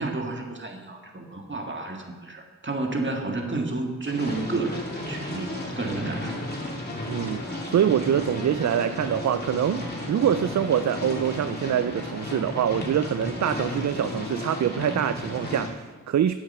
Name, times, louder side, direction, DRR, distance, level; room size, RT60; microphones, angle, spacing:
voice 1, 0.0-5.5 5.8-6.5, right 3 dB, 35° right, 2 dB, 1.8 m, -31 dB
sound 1, 4.0-15.7, left 1 dB, 30° left, 2.8 m, -33 dB
voice 2, 7.1-16.3, right 9 dB, 60° right, 12 dB, 0.4 m, -25 dB
8.1 x 7.9 x 6.8 m, 1.4 s
cardioid pair, 45°, 31 cm